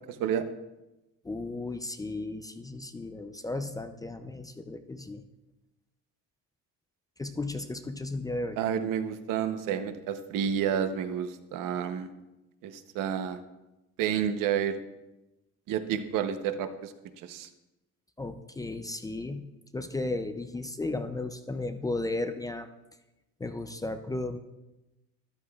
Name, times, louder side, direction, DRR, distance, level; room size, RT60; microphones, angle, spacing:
voice 1, 1.2-5.2 7.2-8.6 18.2-19.5 19.7-22.7 23.4-24.4, left 2 dB, 10° left, 8 dB, 0.3 m, -34 dB
voice 2, 8.6-12.1 12.6-13.4 14.0-14.8 15.7-16.9 17.3-17.5, right 8 dB, 85° right, 10 dB, 0.8 m, -30 dB
13.0 x 11.5 x 2.3 m, 1.0 s
cardioid pair, 155°, 32 cm